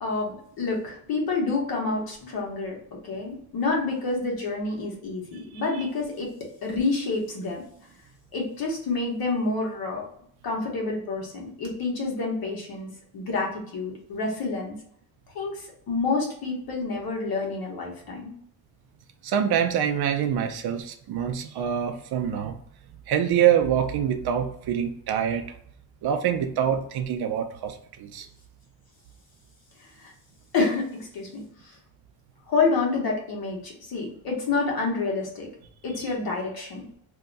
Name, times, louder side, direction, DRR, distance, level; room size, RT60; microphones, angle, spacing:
voice 1, 0.0-2.8 3.0-6.3 6.6-7.6 8.3-10.1 10.4-14.7 15.3-18.3 29.8-30.1 30.5-31.8 32.5-35.5 35.8-36.8, left 3 dB, 75° left, -1 dB, 1.2 m, -28 dB
voice 2, 19.2-22.6 23.1-25.4 26.0-28.3, right 9 dB, 90° right, 7 dB, 0.6 m, -25 dB
2.8 x 2.2 x 3.9 m, 0.65 s
wide cardioid pair, 155°, 37 cm